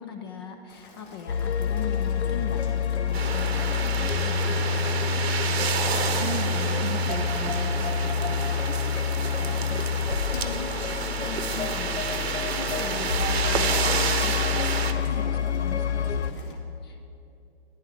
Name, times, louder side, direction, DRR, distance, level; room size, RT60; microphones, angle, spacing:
voice 1, 0.0-5.7 7.5-8.0 9.2-17.1, left 6 dB, 25° left, 6 dB, 0.4 m, -41 dB
Rain, 0.7-16.5, left 4 dB, 50° left, 1.5 m, -51 dB
sound 1, 1.3-16.3, left 7 dB, 90° left, 0.6 m, -27 dB
sound 2, 3.1-14.9, right 6 dB, 70° right, 1.0 m, -30 dB
voice 2, 6.2-7.6 7.9-8.8, right 7 dB, 45° right, 9 dB, 0.7 m, -36 dB
14.0 x 10.0 x 3.4 m, 2.7 s
hypercardioid pair, 135°, 32 cm